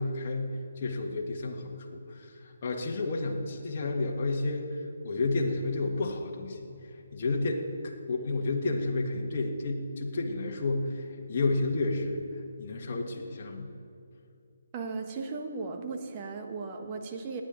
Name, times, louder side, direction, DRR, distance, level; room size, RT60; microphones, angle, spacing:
voice 1, 0.0-6.6 6.9-12.2 12.6-13.7, left 2 dB, 40° left, 0 dB, 1.7 m, -31 dB
voice 2, 14.7-17.4, right 4 dB, 30° right, 3 dB, 1.5 m, -36 dB
28.5 x 10.0 x 4.1 m, 2.5 s
figure-of-eight pair, 145°, 0 cm